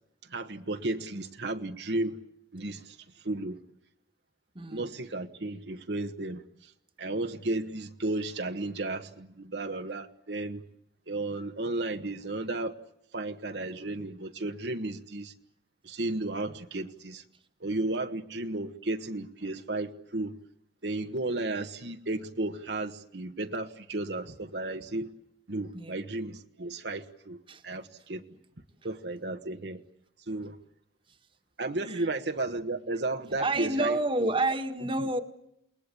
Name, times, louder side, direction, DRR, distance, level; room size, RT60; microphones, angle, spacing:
voice 1, 0.2-2.2 2.5-3.6 4.7-6.7 7.0-10.6 11.1-12.8 13.1-15.3 15.8-17.2 17.6-20.3 20.8-25.1 25.5-28.2 28.8-29.8 30.3-30.6 31.6-34.3, right 2 dB, 70° right, 1.4 m, -34 dB
voice 2, 4.6-4.9 25.7-26.0 27.5-27.6 31.9-32.0 33.4-35.2, right 2 dB, 30° right, 1.7 m, -29 dB
29.0 x 20.5 x 8.5 m
head